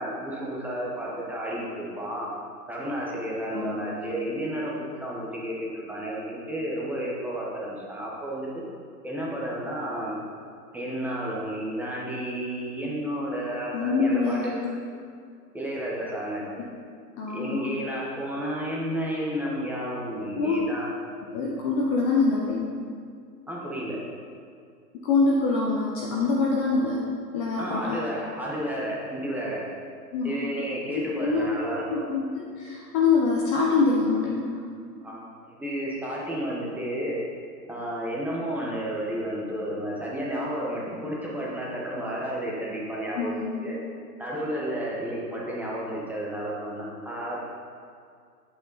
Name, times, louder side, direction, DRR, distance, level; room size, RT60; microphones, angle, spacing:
voice 1, 0.0-2.3 2.7-8.6 9.0-10.2 10.7-14.7 15.5-16.4 17.3-20.9 23.5-24.0 27.6-29.7 30.2-32.0 35.0-37.2 37.7-43.4 43.6-43.8 44.2-47.4, equal, 5° right, -5 dB, 0.9 m, -32 dB
voice 2, 13.7-14.6 17.2-17.7 20.4-20.6 21.3-22.6 25.0-27.0 27.3-28.0 30.1-30.3 31.1-31.5 31.9-34.7 43.2-43.6, left 4 dB, 20° left, -3 dB, 0.7 m, -25 dB
8.7 x 8.0 x 4.0 m, 2.2 s
hypercardioid pair, 130°, 49 cm